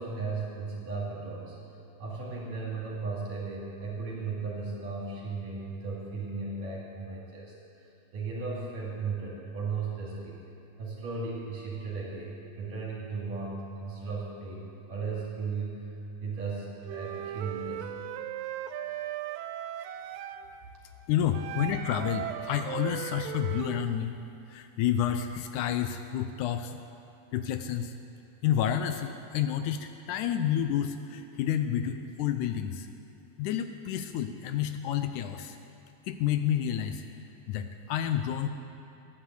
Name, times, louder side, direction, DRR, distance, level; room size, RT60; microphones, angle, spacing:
voice 1, 0.0-1.6 2.0-10.4 10.8-15.9 16.2-17.9, right 4 dB, 70° right, -5 dB, 4.0 m, -36 dB
Wind instrument woodwind instrument, 16.8-20.5 21.3-23.9, right 11 dB, 90° right, 2.3 m, -37 dB
voice 2, 21.1-24.2 24.5-26.8 27.3-27.9 28.4-32.9 33.4-35.6 36.1-37.0 37.5-38.5, left 10 dB, 80° left, 8 dB, 1.9 m, -29 dB
14.0 x 9.9 x 8.0 m, 2.7 s
omnidirectional pair, 3.9 m